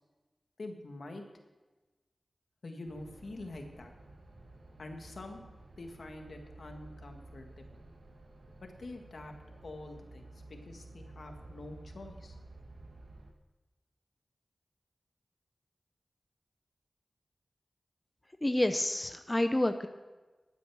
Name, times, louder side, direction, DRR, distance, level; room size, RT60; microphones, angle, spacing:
voice 1, 0.6-1.2 2.6-3.9 4.8-5.4 5.8-7.8 8.6-12.4, left 2 dB, 70° left, 4 dB, 1.8 m, -46 dB
sound 1, 2.9-13.3, right 2 dB, 75° right, 1.5 m, -52 dB
voice 2, 18.4-19.9, left 1 dB, 20° left, 8 dB, 0.7 m, -28 dB
12.0 x 9.3 x 6.3 m, 1.2 s
wide cardioid pair, 60°, 0 cm